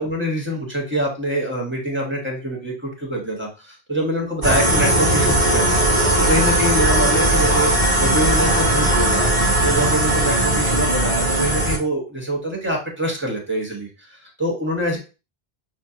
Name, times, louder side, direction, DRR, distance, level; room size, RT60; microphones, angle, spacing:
voice 1, 0.0-5.8 6.2-9.2 9.6-15.0, equal, 10° right, -2 dB, 1.1 m, -25 dB
sound 1, 4.4-11.8, right 1 dB, 35° right, 1.4 m, -18 dB
5.9 x 2.2 x 2.7 m, 0.32 s
omnidirectional pair, 1.1 m